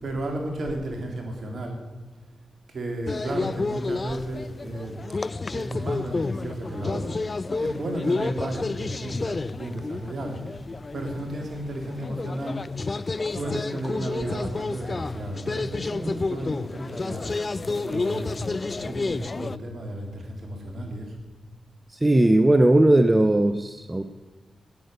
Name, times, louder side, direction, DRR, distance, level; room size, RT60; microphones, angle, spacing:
voice 1, 0.0-1.8 2.7-5.0 5.5-7.2 7.5-10.6 10.9-12.7 13.2-17.3 17.6-18.5 18.7-21.2, right 1 dB, 60° right, 3 dB, 3.5 m, -33 dB
sound 1, 3.1-19.6, left 3 dB, 40° left, 0.3 m, -30 dB
voice 2, 22.0-24.0, right 1 dB, 20° right, 9 dB, 0.9 m, -18 dB
15.5 x 9.9 x 6.8 m, 1.3 s
supercardioid pair, 45°, 0 cm